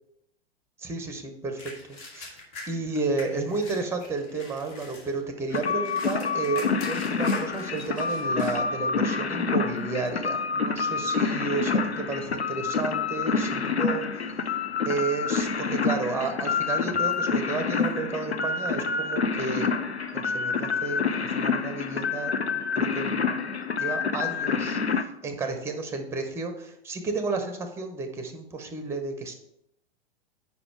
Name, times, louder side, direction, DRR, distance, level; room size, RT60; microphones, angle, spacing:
voice 1, 0.8-2.3 2.7-14.3 14.8-19.8 20.1-23.4 23.8-29.3, right 3 dB, 10° right, 7 dB, 0.7 m, -32 dB
sound 1, 1.6-8.6 9.2-9.3 9.8-10.2 10.9-11.0 11.4-12.5 12.8-13.4 13.7-13.8 14.7-15.3 15.7-18.8, left 2 dB, 40° left, 1.6 m, -45 dB
sound 2, 5.5-25.0, left 5 dB, 90° left, 0.5 m, -27 dB
5.3 x 5.0 x 4.6 m, 0.78 s
figure-of-eight pair, 100°, 31 cm